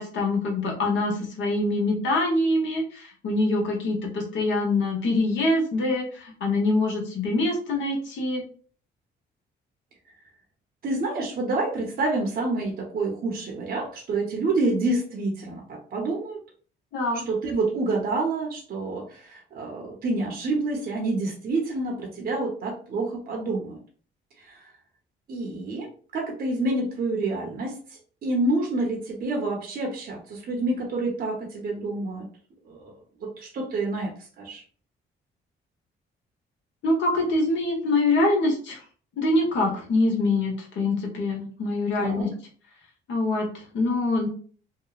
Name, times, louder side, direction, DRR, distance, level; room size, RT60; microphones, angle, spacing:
voice 1, 0.0-8.4 16.9-17.2 36.8-38.8 39.2-42.3 43.1-44.3, left 2 dB, 65° left, 0 dB, 1.0 m, -24 dB
voice 2, 10.8-16.4 17.2-23.8 24.4-24.7 25.3-32.3 32.6-32.9 33.4-34.6 42.0-42.3, right 2 dB, 50° right, 0 dB, 0.7 m, -28 dB
2.9 x 2.1 x 2.3 m, 0.43 s
cardioid pair, 90°, 20 cm